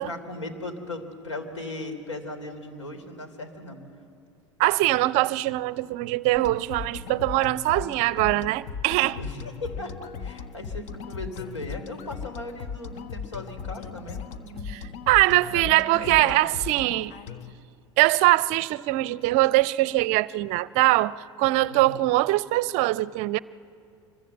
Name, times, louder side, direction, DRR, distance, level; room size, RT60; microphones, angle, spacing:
voice 1, 0.0-3.8 9.1-14.7 15.4-16.4 21.7-22.0, left 2 dB, 80° left, 3.2 m, -38 dB
voice 2, 4.6-9.2 14.7-14.8 15.1-17.1 18.0-23.4, right 18 dB, 50° right, 0.6 m, -22 dB
sound 1, 6.3-17.5, left 6 dB, 45° left, 1.3 m, -38 dB
26.0 x 22.5 x 7.7 m
figure-of-eight pair, 75°, 15 cm